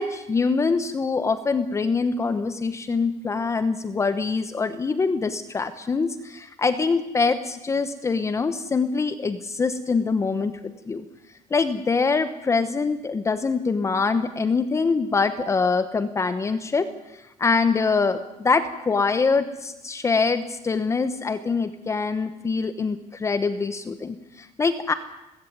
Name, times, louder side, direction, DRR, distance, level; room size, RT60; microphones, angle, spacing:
voice 1, 0.0-10.5 10.9-11.0 11.5-16.9 17.4-24.9, left 4 dB, 20° left, 11 dB, 1.0 m, -24 dB
20.0 x 15.5 x 9.5 m, 0.95 s
cardioid pair, 145°, 13 cm